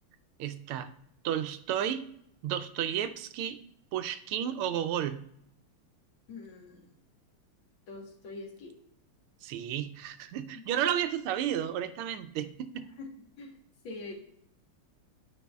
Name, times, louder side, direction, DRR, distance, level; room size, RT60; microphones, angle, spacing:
voice 1, 0.4-0.9 1.2-2.0 2.4-3.6 3.9-5.2 9.4-12.8, right 10 dB, 85° right, 10 dB, 1.5 m, -32 dB
voice 2, 6.3-6.9 7.9-8.8 10.5-10.7 13.0-13.1 13.4-13.6 13.8-14.1, left 3 dB, 65° left, 2 dB, 1.8 m, -44 dB
8.2 x 5.2 x 2.3 m, 0.72 s
omnidirectional pair, 2.4 m